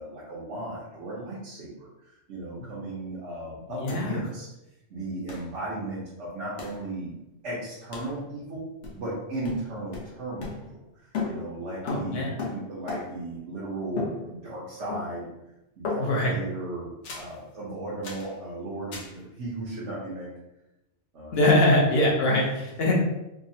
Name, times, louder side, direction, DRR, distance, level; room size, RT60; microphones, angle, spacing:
voice 1, 0.0-4.5 4.9-7.2 7.4-8.7 8.9-10.8 11.2-15.3 15.8-20.3 21.1-21.6 22.3-22.4, right 2 dB, 85° right, -8 dB, 1.1 m, -36 dB
voice 2, 3.7-4.2 11.8-12.4 16.0-16.3 21.3-22.9, left 1 dB, 65° left, -1 dB, 0.9 m, -23 dB
sound 1, 3.9-4.0 4.2-4.3 5.3-5.5 6.6-6.8 7.9-8.2 8.8-9.2 9.4-10.9 11.1-13.3 14.0-14.6 14.9-15.3 15.8-16.4 17.0-17.4 18.0-18.3 18.9-19.2, left 4 dB, 85° left, 1.0 m, -36 dB
3.6 x 2.0 x 2.6 m, 0.92 s
omnidirectional pair, 1.2 m